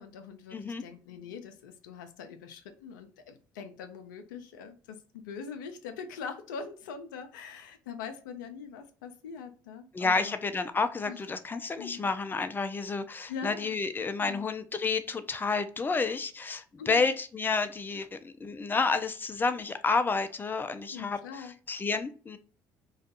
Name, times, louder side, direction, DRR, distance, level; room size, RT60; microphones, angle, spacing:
voice 1, 0.0-10.4 11.1-11.2 11.8-12.1 13.3-13.7 14.2-14.5 16.8-17.1 20.9-21.5, left 6 dB, 85° left, 6 dB, 0.4 m, -42 dB
voice 2, 0.5-0.8 9.9-22.4, left 4 dB, 20° left, 10 dB, 0.4 m, -30 dB
2.4 x 2.3 x 2.6 m, 0.39 s
hypercardioid pair, 55°, 10 cm